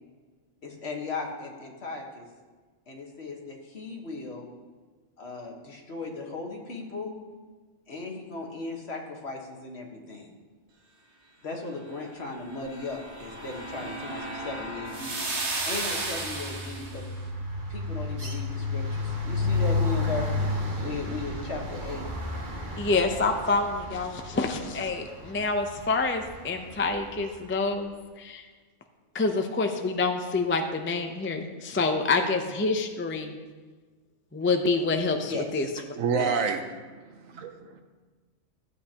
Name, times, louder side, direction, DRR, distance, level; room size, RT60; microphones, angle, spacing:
voice 1, 0.6-2.3 2.9-4.5 5.2-7.1 7.9-10.3 11.4-15.2 15.7-17.1 17.7-20.3 20.8-22.1 35.2-35.7 36.1-36.3, left 3 dB, 50° left, 1 dB, 1.6 m, -37 dB
sound 1, 12.4-17.0, right 2 dB, 55° right, 1.5 m, -34 dB
sound 2, 13.5-13.9 14.2-27.3, left 3 dB, 35° right, 1.4 m, -33 dB
voice 2, 22.8-28.4 29.1-33.4 34.3-35.7, left 3 dB, 15° left, 5 dB, 0.4 m, -27 dB
voice 3, 35.9-37.8, right 5 dB, 75° right, 6 dB, 1.2 m, -29 dB
15.0 x 8.3 x 2.9 m, 1.4 s
omnidirectional pair, 1.4 m